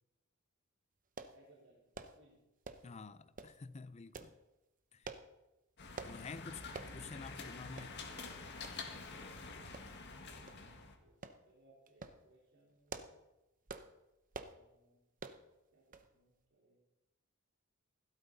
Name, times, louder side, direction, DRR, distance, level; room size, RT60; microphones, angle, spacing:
sound 1, 1.2-1.4 1.9-2.2 2.6-2.9 3.4-3.6 4.1-4.3 5.0-5.3 6.0-6.2 6.7-6.9 7.3-7.4 7.8-7.9 8.6-8.8 9.7-10.1 10.5-10.6 11.2-11.4 11.9-12.2 12.7-13.2 13.7-13.9 14.3-14.6 15.2-15.4 15.9-16.1 16.4-16.5, right 4 dB, 40° right, 0.8 m, -47 dB
voice 1, 1.3-2.4 2.8-3.0 3.4-3.5 7.6-8.3 9.8-13.1 14.3-15.0 15.7-16.8, right 2 dB, 65° right, 4.1 m, -68 dB
voice 2, 2.8-4.4 4.9-5.1 6.0-6.6 6.9-7.9, left 4 dB, 30° left, 0.5 m, -49 dB
sound 2, 5.8-11.0, left 4 dB, 55° left, 1.7 m, -48 dB
16.0 x 12.5 x 4.1 m
head